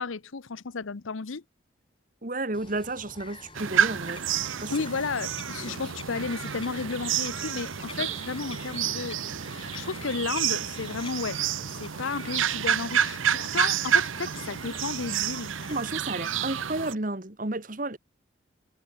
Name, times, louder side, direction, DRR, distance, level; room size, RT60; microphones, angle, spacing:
voice 1, 0.0-1.4 4.7-9.2 9.5-11.4 11.8-15.5, left 4 dB, 85° left, 0.8 m, -33 dB
voice 2, 2.2-4.2 4.6-4.7 5.6-5.7 15.7-18.0, right 2 dB, 40° right, 1.5 m, -32 dB
Bird vocalization bird call bird song, 2.5-15.8, left 3 dB, 25° left, 3.2 m, -47 dB
sound 1, 3.5-16.9, right 9 dB, 80° right, 0.8 m, -29 dB
head